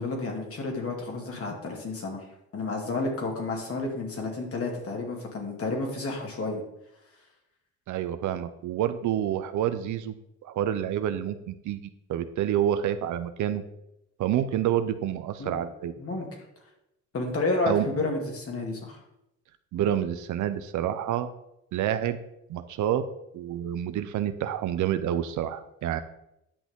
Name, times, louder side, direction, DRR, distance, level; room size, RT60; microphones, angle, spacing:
voice 1, 0.0-2.2 2.5-6.6 15.4-15.5 16.0-16.3 17.1-19.0, left 3 dB, 50° left, 1 dB, 2.3 m, -31 dB
voice 2, 7.9-10.1 10.4-13.6 14.2-15.9 17.7-17.9 19.7-21.3 21.7-22.2 22.5-23.1 23.3-26.0, right 10 dB, 75° right, 11 dB, 0.7 m, -28 dB
10.0 x 6.1 x 3.7 m, 0.83 s
cardioid pair, 90°, 30 cm